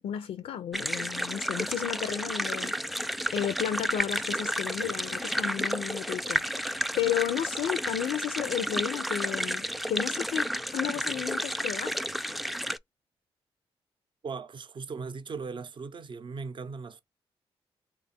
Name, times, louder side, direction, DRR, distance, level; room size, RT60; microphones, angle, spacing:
voice 1, 0.0-12.0, left 10 dB, 80° left, 0.4 m, -33 dB
sound 1, 0.7-12.8, equal, ahead, 0.3 m, -31 dB
voice 2, 14.2-17.0, right 5 dB, 50° right, 0.6 m, -38 dB
3.3 x 2.3 x 4.0 m
supercardioid pair, 50°, 11 cm